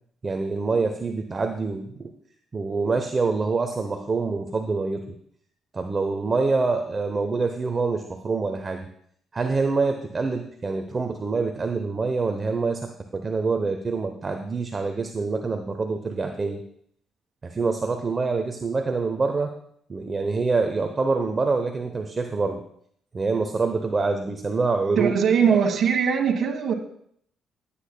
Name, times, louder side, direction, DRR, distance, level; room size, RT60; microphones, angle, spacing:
voice 1, 0.2-2.1 2.5-5.2 5.7-8.9 9.3-16.6 17.4-19.5 19.9-22.6 23.1-25.2 25.5-25.6, right 4 dB, 35° right, 5 dB, 0.7 m, -26 dB
voice 2, 25.0-26.7, right 7 dB, 60° right, 3 dB, 1.4 m, -21 dB
15.5 x 8.4 x 2.2 m, 0.66 s
cardioid pair, 90°, 0 cm